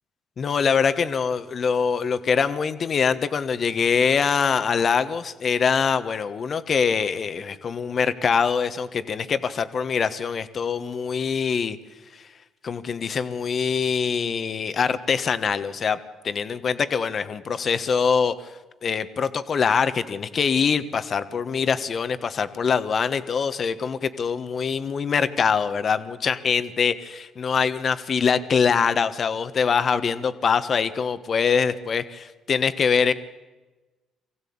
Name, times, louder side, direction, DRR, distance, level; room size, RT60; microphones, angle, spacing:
voice 1, 0.4-11.8 12.1-12.2 12.6-16.0 16.2-18.3 18.8-33.1, left 6 dB, 50° left, 12 dB, 1.3 m, -23 dB
23.5 x 15.5 x 8.7 m, 1.2 s
supercardioid pair, 65°, 0 cm